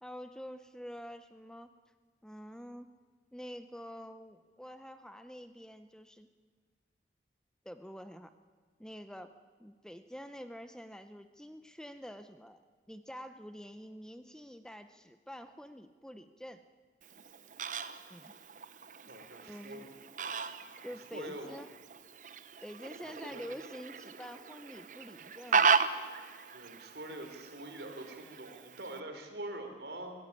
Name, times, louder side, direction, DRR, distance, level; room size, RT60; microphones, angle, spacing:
voice 1, 0.0-1.7 2.2-2.9 3.3-6.3 7.6-8.3 8.8-9.3 9.6-12.6 12.9-16.6 18.1-18.3 19.5-19.8 20.8-21.7 22.6-25.8, equal, 5° left, 10 dB, 0.7 m, -47 dB
Fowl, 17.0-29.0, right 5 dB, 45° right, 0.9 m, -36 dB
voice 2, 19.1-19.9 21.1-21.6 23.0-23.4 26.5-30.1, right 1 dB, 70° right, 5 dB, 4.0 m, -44 dB
22.5 x 17.0 x 9.8 m, 1.5 s
head